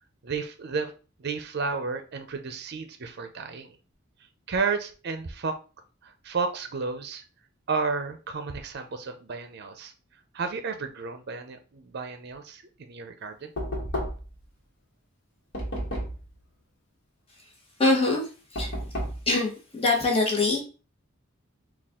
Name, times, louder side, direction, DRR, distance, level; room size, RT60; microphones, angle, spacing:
voice 1, 0.2-0.9 1.2-3.7 4.5-5.5 6.0-7.2 7.7-9.9 10.3-13.5, right 4 dB, 55° right, 8 dB, 0.6 m, -32 dB
Knock, 13.6-14.4 15.5-16.3 18.6-19.3, equal, 60° left, 1.3 m, -32 dB
voice 2, 17.8-18.2 18.5-18.7 19.3-20.6, left 2 dB, 30° left, -1 dB, 1.1 m, -23 dB
4.2 x 2.4 x 3.6 m, 0.35 s
head